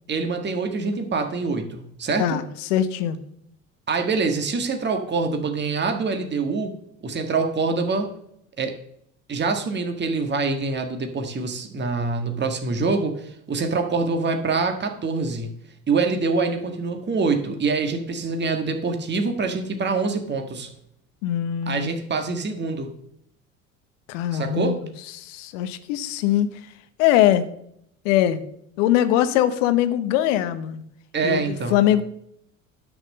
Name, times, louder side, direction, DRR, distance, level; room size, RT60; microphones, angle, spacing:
voice 1, 0.1-2.4 3.9-6.8 7.0-8.1 8.6-8.7 9.3-15.5 15.9-20.7 21.7-22.9 24.3-24.8 31.1-31.8, right 4 dB, 25° right, 5 dB, 1.6 m, -25 dB
voice 2, 2.7-3.2 21.2-21.9 24.1-24.7 25.2-26.5 27.0-27.4 28.0-28.4 28.8-30.8 31.2-32.0, left 12 dB, 70° left, 12 dB, 1.0 m, -21 dB
10.0 x 6.2 x 6.6 m, 0.73 s
hypercardioid pair, 60°, 38 cm